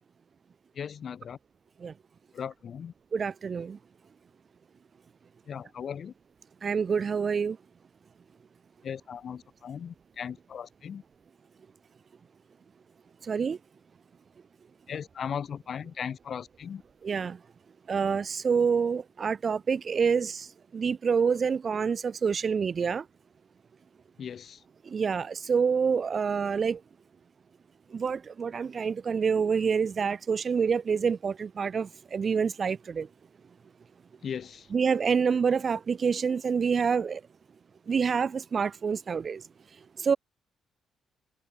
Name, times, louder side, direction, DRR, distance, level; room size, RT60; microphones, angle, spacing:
voice 1, 0.7-1.4 2.3-2.9 5.5-6.1 8.8-11.0 14.9-16.8 24.2-24.6 34.2-34.7, left 7 dB, 55° left, 2.6 m, -37 dB
voice 2, 3.1-3.8 6.6-7.6 13.3-13.6 17.0-17.4 17.9-20.5 20.7-23.0 24.9-26.8 27.9-33.1 34.7-37.2 37.9-39.4 40.0-40.2, right 6 dB, 45° right, 0.8 m, -27 dB
cardioid pair, 90°, 0 cm